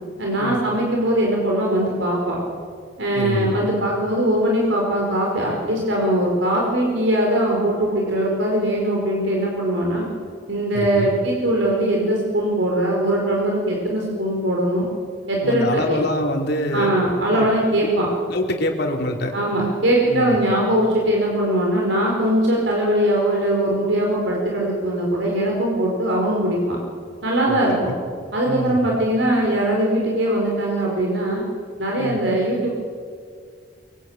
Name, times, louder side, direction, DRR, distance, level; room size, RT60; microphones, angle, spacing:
voice 1, 0.2-2.4 3.0-10.1 10.5-14.9 15.3-16.0 16.7-18.1 19.3-26.8 27.2-27.9 28.3-31.4 31.8-32.8, right 1 dB, 75° right, -2 dB, 4.8 m, -21 dB
voice 2, 3.1-3.5 10.7-11.1 15.4-16.9 17.3-17.5 18.2-19.3 20.1-20.3 27.5-27.9 28.4-28.8 32.0-32.2, left 1 dB, 60° left, 2 dB, 3.0 m, -25 dB
24.5 x 22.5 x 9.0 m, 2.1 s
head